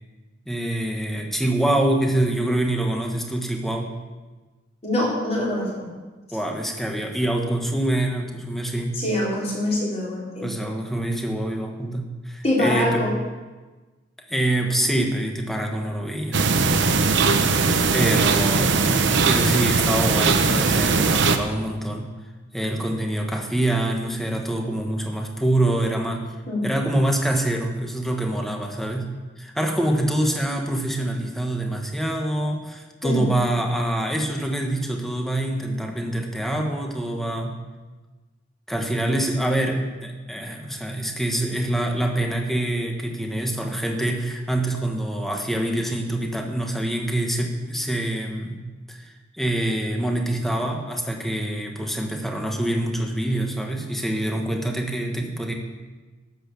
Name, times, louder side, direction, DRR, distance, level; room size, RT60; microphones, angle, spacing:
voice 1, 0.5-3.9 6.3-9.0 10.4-13.0 14.3-16.4 17.9-22.1 22.5-26.2 26.6-29.1 29.4-37.6 38.7-48.6 48.9-55.5, right 1 dB, ahead, 2 dB, 1.4 m, -25 dB
voice 2, 4.8-5.9 8.9-10.5 12.4-13.1 17.6-17.9 26.5-26.7 33.0-33.3, left 1 dB, 30° left, -5 dB, 4.1 m, -24 dB
sound 1, 16.3-21.4, right 4 dB, 60° right, 0.9 m, -19 dB
12.0 x 7.8 x 7.0 m, 1.3 s
head